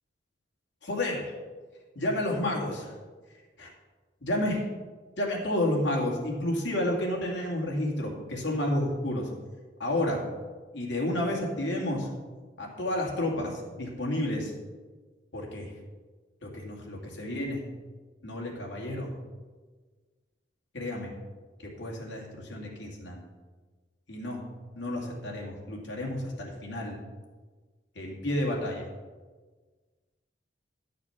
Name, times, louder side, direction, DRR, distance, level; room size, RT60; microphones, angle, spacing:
voice 1, 0.8-1.3 2.0-2.9 3.6-3.7 4.2-4.6 5.2-9.3 9.8-10.2 10.7-12.1 12.6-14.5 15.3-15.7 16.4-17.6 18.2-19.1 20.7-21.1 21.8-23.2 24.1-24.4 24.7-27.0 28.0-28.8, left 1 dB, 90° left, -2 dB, 2.4 m, -30 dB
11.0 x 6.7 x 5.9 m, 1.4 s
head